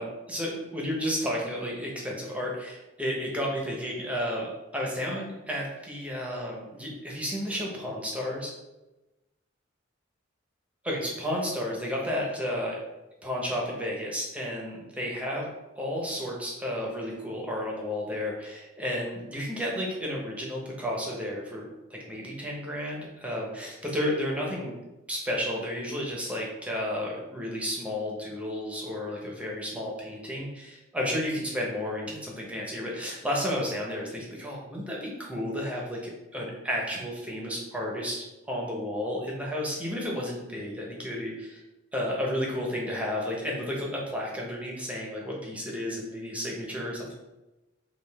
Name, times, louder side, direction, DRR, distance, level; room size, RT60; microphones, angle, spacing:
voice 1, 0.0-8.5 10.8-12.8 13.2-15.5 15.8-24.7 25.1-41.6 41.9-47.1, equal, 5° right, -3 dB, 0.8 m, -32 dB
5.3 x 2.4 x 3.4 m, 1.0 s
head